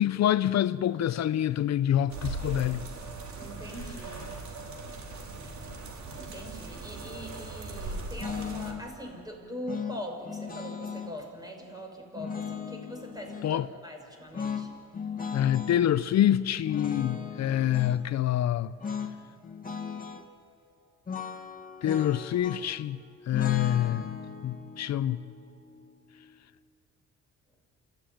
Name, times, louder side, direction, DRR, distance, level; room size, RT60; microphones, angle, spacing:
voice 1, 0.0-2.8 13.4-13.7 15.3-18.7 21.8-23.0 23.3-25.2, left 11 dB, 60° left, 0.6 m, -26 dB
sound 1, 2.1-8.7, right 3 dB, 65° right, 3.9 m, -39 dB
voice 2, 3.4-4.3 6.1-14.7, equal, 10° right, 6.0 m, -42 dB
sound 2, 8.2-8.9 9.7-11.1 12.1-13.5 14.3-15.8 16.6-18.0 18.8-19.2 19.4-20.2 21.1-22.8 23.3-26.4, left 6 dB, 30° left, 2.0 m, -37 dB
27.5 x 14.5 x 9.4 m
cardioid pair, 90°, 30 cm